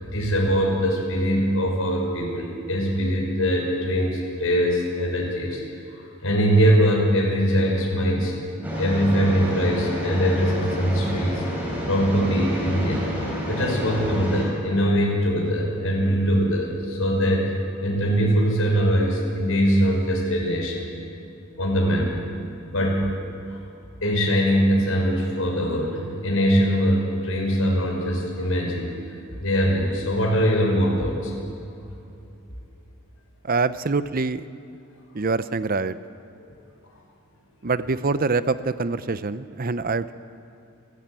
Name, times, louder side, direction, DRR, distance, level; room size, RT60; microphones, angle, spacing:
voice 1, 0.0-5.6 5.9-8.3 8.8-11.4 11.9-13.1 13.5-17.5 17.8-20.9 21.6-22.1 22.7-23.1 23.5-23.6 24.0-28.9 29.4-31.3, equal, 70° left, -1 dB, 6.3 m, -22 dB
sound 1, 8.6-14.5, equal, 10° right, 5.6 m, -30 dB
voice 2, 33.4-34.5 35.1-36.0 37.6-40.1, right 3 dB, 40° right, 13 dB, 0.7 m, -25 dB
28.5 x 13.0 x 9.0 m, 2.7 s
head